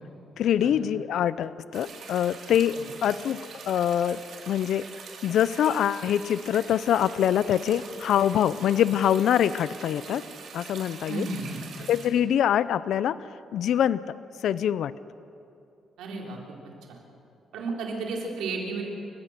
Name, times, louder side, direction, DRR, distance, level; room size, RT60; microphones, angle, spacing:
voice 1, 0.4-4.9 5.2-10.2 10.5-11.3 11.9-13.2 13.5-14.2 14.4-14.9, left 10 dB, 75° left, 16 dB, 0.5 m, -24 dB
sound 1, 1.7-12.1, right 5 dB, 65° right, 3.9 m, -44 dB
voice 2, 11.1-11.6 16.0-16.4 16.9-17.0 17.5-18.8, right 3 dB, 85° right, -1 dB, 4.4 m, -33 dB
29.0 x 16.0 x 6.7 m, 2.7 s
cardioid pair, 90°, 0 cm